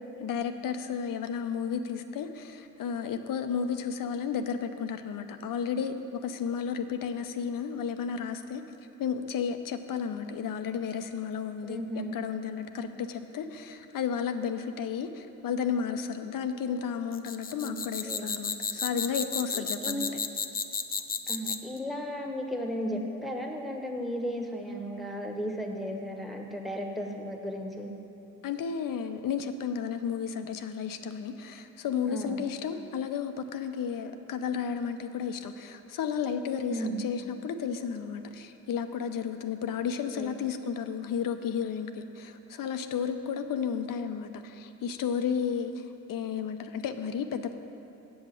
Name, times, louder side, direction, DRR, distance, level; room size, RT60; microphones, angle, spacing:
voice 1, 0.2-8.6 9.0-11.8 12.1-20.1 28.4-47.5, left 7 dB, 70° left, 8 dB, 0.6 m, -33 dB
voice 2, 11.7-12.2 17.6-17.8 18.0-18.3 19.5-20.1 21.3-27.9 32.0-32.4 36.7-37.1 40.1-40.3, equal, ahead, 1 dB, 1.2 m, -35 dB
sound 1, 17.1-21.8, left 5 dB, 25° left, 0.5 m, -32 dB
7.8 x 5.6 x 7.5 m, 2.8 s
cardioid pair, 65°, 35 cm